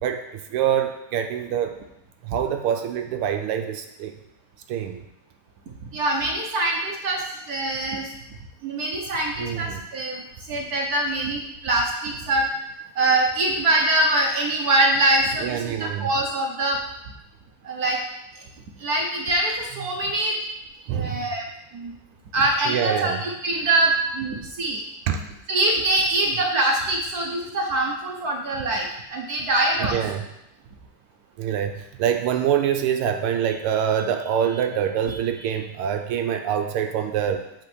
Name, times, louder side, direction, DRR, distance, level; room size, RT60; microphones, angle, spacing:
voice 1, 0.0-1.8 2.2-4.1 4.7-5.0 9.4-9.8 15.4-16.1 19.7-19.9 20.9-21.2 22.6-23.2 25.1-25.2 29.8-30.2 31.4-37.4, right 9 dB, 85° right, 6 dB, 1.5 m, -25 dB
voice 2, 5.9-8.1 8.6-12.5 13.0-16.8 17.6-18.0 18.8-20.4 20.9-21.4 21.7-21.9 22.3-24.8 25.5-30.0, right 2 dB, 55° right, 1 dB, 1.1 m, -23 dB
8.5 x 4.2 x 6.2 m, 0.85 s
omnidirectional pair, 2.4 m